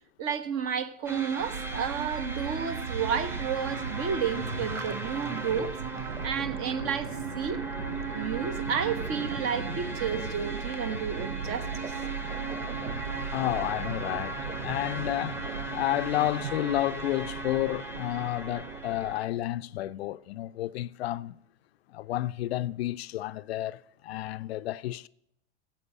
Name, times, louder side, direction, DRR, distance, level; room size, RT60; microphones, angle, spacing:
voice 1, 0.2-5.8 6.2-7.6 8.1-11.9, right 7 dB, 40° right, 1.1 m, -31 dB
sound 1, 1.1-19.3, right 2 dB, 5° right, 1.0 m, -38 dB
sound 2, 1.4-19.1, right 5 dB, 85° right, 0.7 m, -38 dB
voice 2, 13.3-15.4 15.7-21.4 21.9-25.1, left 15 dB, 60° left, 0.5 m, -31 dB
14.5 x 7.9 x 6.1 m
figure-of-eight pair, 80°, 35 cm